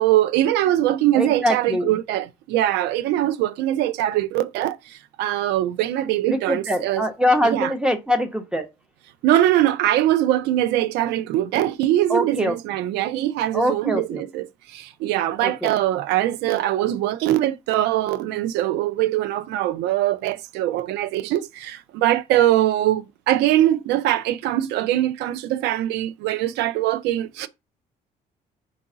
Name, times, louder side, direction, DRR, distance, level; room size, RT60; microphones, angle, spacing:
voice 1, 0.0-7.1 7.4-7.7 9.2-27.5, right 13 dB, 85° right, 0.4 m, -22 dB
voice 2, 1.1-2.0 6.3-8.7 12.1-12.6 13.5-14.2 15.4-15.8, left 1 dB, 5° right, 1.0 m, -23 dB
4.6 x 2.7 x 3.8 m
cardioid pair, 110°, 17 cm